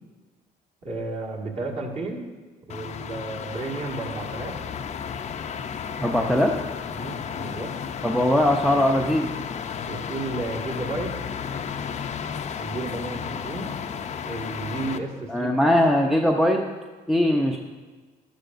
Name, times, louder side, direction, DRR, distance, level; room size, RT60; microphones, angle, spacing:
voice 1, 0.8-2.3 2.7-4.6 6.9-7.7 9.9-11.2 12.6-13.7 14.2-15.5, right 2 dB, 40° right, -2 dB, 1.9 m, -32 dB
sound 1, 2.7-15.0, left 7 dB, 40° left, 0.6 m, -33 dB
voice 2, 6.0-6.5 8.0-9.3 15.3-16.6 17.1-17.6, left 1 dB, ahead, 1 dB, 0.6 m, -20 dB
12.0 x 11.5 x 2.6 m, 1.3 s
cardioid pair, 110°, 17 cm